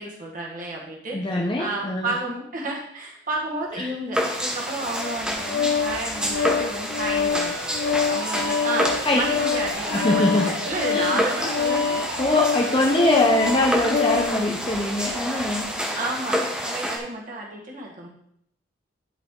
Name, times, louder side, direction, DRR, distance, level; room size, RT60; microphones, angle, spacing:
voice 1, 0.0-12.9 15.9-18.1, right 2 dB, 45° right, -2 dB, 1.7 m, -32 dB
voice 2, 1.1-2.2 3.8-3.9 9.0-9.2 9.9-10.6 10.9-11.2 12.2-15.7, left 1 dB, 25° left, 0 dB, 0.8 m, -22 dB
sound 1, 4.1-17.0, equal, 5° right, 1.0 m, -29 dB
Organ, 5.0-14.4, left 7 dB, 50° left, 0.3 m, -26 dB
sound 2, 7.3-14.2, right 3 dB, 85° right, 2.6 m, -35 dB
11.0 x 4.9 x 3.8 m, 0.72 s
head